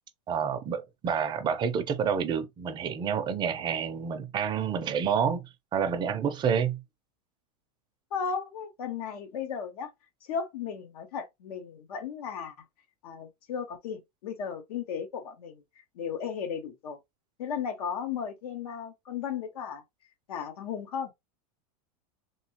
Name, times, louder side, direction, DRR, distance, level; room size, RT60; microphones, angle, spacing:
voice 1, 0.3-5.4 5.7-6.8, right 7 dB, 25° right, 0.5 m, -28 dB
voice 2, 8.1-9.9 10.2-12.5 13.0-15.6 16.0-17.0 17.4-19.8 20.3-21.1, left 7 dB, 80° left, 0.8 m, -35 dB
3.0 x 2.7 x 2.7 m
supercardioid pair, 130°, 19 cm